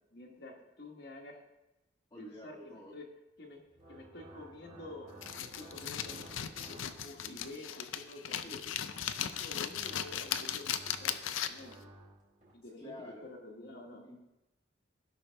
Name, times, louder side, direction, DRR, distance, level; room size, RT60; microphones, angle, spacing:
voice 1, 0.1-1.4 2.2-3.1 3.4-3.6 3.9-8.6 9.0-11.9 12.5-14.0, left 2 dB, 55° left, -1 dB, 1.3 m, -49 dB
voice 2, 2.1-2.9 7.2-7.4 8.4-8.6 12.8-13.2 13.6-14.2, equal, 20° left, -6 dB, 1.2 m, -49 dB
sound 1, 3.6-7.7 8.6-12.6, right 1 dB, 40° right, 2.5 m, -55 dB
sound 2, 5.2-11.7, left 9 dB, 85° left, 0.5 m, -37 dB
16.5 x 5.7 x 3.4 m, 0.96 s
head